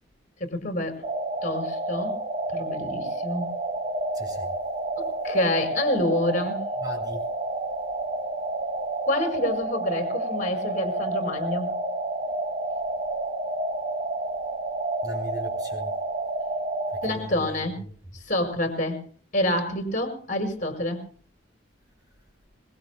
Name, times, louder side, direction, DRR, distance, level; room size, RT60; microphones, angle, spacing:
voice 1, 0.4-1.0 1.4-2.2 2.5-3.5 5.0-6.6 9.1-11.8 17.0-17.8 18.1-19.0 19.3-21.0, left 1 dB, 40° left, 5.6 m, -27 dB
sound 1, 1.0-17.1, right 2 dB, 40° right, 3.5 m, -30 dB
voice 2, 4.1-4.5 6.8-7.3 15.0-15.9 16.9-17.6, right 1 dB, 20° right, 7.4 m, -37 dB
25.5 x 23.0 x 2.3 m
head